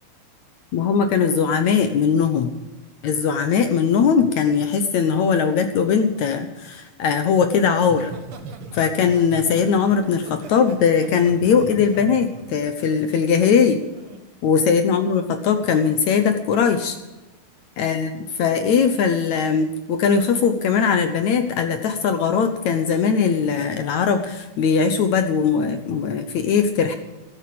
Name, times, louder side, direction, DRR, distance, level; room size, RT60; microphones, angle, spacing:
voice 1, 0.7-2.5 3.0-8.1 8.7-13.8 14.4-17.0 17.8-27.0, left 6 dB, 70° left, 8 dB, 1.9 m, -20 dB
Laughter, 7.8-13.5 13.9-14.2, right 5 dB, 55° right, 1.6 m, -40 dB
14.0 x 13.0 x 7.7 m, 1.0 s
omnidirectional pair, 4.3 m